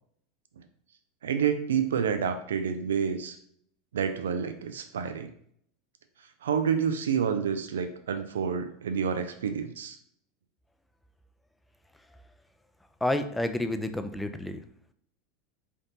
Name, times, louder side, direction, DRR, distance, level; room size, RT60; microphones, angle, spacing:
voice 1, 1.2-3.4 3.9-5.3 6.4-10.0, right 7 dB, 90° right, 8 dB, 0.3 m, -28 dB
voice 2, 13.0-14.6, left 1 dB, 5° left, 8 dB, 0.3 m, -29 dB
3.4 x 2.5 x 2.7 m, 0.65 s
hypercardioid pair, 105°, 0 cm